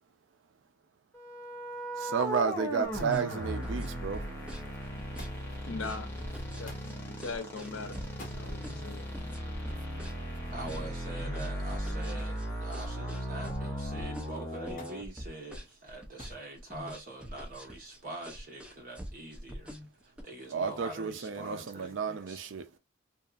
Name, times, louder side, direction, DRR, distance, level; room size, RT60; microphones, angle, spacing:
sound 1, 1.1-15.0, equal, 10° left, 0.8 m, -37 dB
voice 1, 2.0-4.3 20.5-22.6, right 6 dB, 70° right, 0.4 m, -32 dB
sound 2, 2.8-20.2, equal, 5° right, 0.4 m, -45 dB
Thump thud, 5.2-5.6 6.7-7.0 8.1-8.4 9.7-9.9 12.2-12.5 12.9-13.4 14.8-15.0 16.2-16.5 17.4-17.9 18.9-19.0, left 1 dB, 40° left, 1.0 m, -51 dB
voice 2, 5.7-6.1 6.4-9.0, left 4 dB, 75° left, 0.6 m, -41 dB
voice 3, 10.5-19.7 20.0-22.4, right 1 dB, 40° right, 1.1 m, -44 dB
2.7 x 2.4 x 2.3 m
head